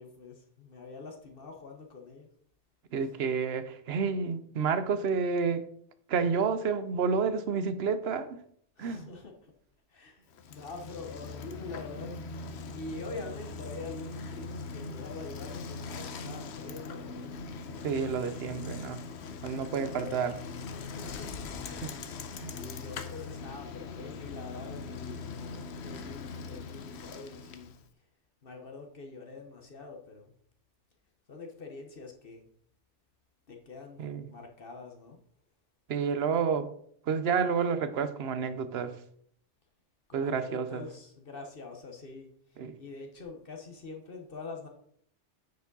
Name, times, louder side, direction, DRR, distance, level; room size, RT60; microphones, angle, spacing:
voice 1, 0.0-2.3 8.8-9.5 9.9-12.2 12.7-17.3 19.7-20.2 20.6-21.3 21.6-22.2 22.6-27.7 28.4-30.3 31.3-32.4 33.5-35.2 40.1-44.7, left 3 dB, 50° left, 1.2 m, -45 dB
voice 2, 2.9-5.6 6.1-8.4 8.8-9.1 17.8-19.0 19.4-20.4 21.8-21.9 22.4-22.5 34.0-34.2 35.9-36.7 37.1-39.0 40.1-40.8 42.6-42.7, right 5 dB, 65° right, 0.9 m, -30 dB
Bicycle, 10.3-27.9, left 4 dB, 70° left, 1.0 m, -41 dB
9.2 x 4.9 x 4.0 m
omnidirectional pair, 1.2 m